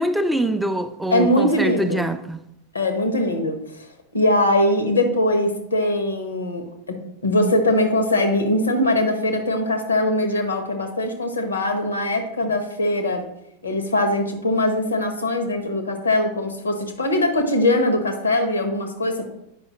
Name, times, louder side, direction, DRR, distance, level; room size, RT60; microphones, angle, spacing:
voice 1, 0.0-2.4, right 1 dB, 5° right, 0.4 m, -24 dB
voice 2, 1.1-2.0 2.7-3.9 4.1-13.2 13.6-19.3, left 1 dB, 75° left, 1.0 m, -21 dB
8.8 x 5.5 x 3.0 m
figure-of-eight pair, 90°, 0 cm